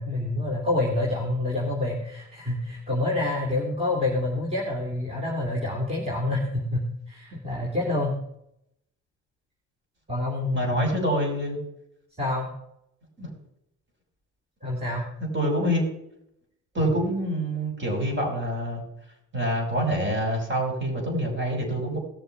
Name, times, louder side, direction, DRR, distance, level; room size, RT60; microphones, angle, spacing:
voice 1, 0.0-8.2 10.1-10.7 12.2-12.5 14.6-15.1, left 2 dB, 20° right, -2 dB, 2.8 m, -27 dB
voice 2, 10.5-11.6 13.2-13.3 15.2-15.8 16.7-18.8 19.3-22.0, right 1 dB, 40° right, 0 dB, 6.0 m, -26 dB
18.0 x 6.9 x 4.6 m, 0.79 s
cardioid pair, 90°, 30 cm